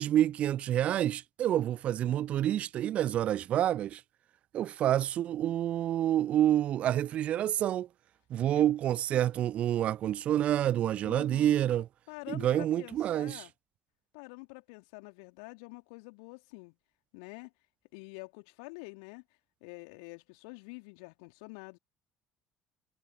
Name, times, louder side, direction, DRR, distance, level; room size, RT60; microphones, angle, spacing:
voice 1, 0.0-4.0 4.5-7.9 8.3-11.9 12.3-13.4, right 11 dB, 45° right, 0.4 m, -28 dB
voice 2, 11.0-11.6 12.1-13.5 14.1-16.8 17.1-17.5 17.9-19.2 19.6-21.8, left 34 dB, 65° left, 3.4 m, -47 dB
figure-of-eight pair, 55°, 3 cm